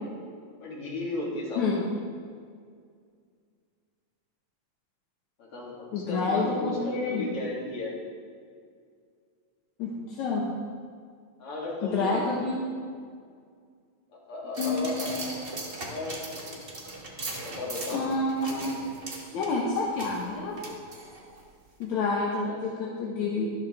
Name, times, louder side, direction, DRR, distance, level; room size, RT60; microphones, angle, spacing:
voice 1, 0.6-1.8 5.4-8.0 11.4-12.4 14.3-15.1 15.4-16.1 16.4-16.6 17.4-18.0 22.4-22.6, left 2 dB, 50° left, -5 dB, 3.5 m, -35 dB
voice 2, 5.9-7.2 9.8-10.5 11.8-12.8 14.6-15.1 17.9-18.8 19.3-20.8 21.8-23.5, left 3 dB, 70° left, -4 dB, 2.5 m, -28 dB
sound 1, 14.5-21.4 21.8-21.9, right 2 dB, 85° right, 0.5 m, -39 dB
13.0 x 12.0 x 3.5 m, 2.1 s
omnidirectional pair, 3.5 m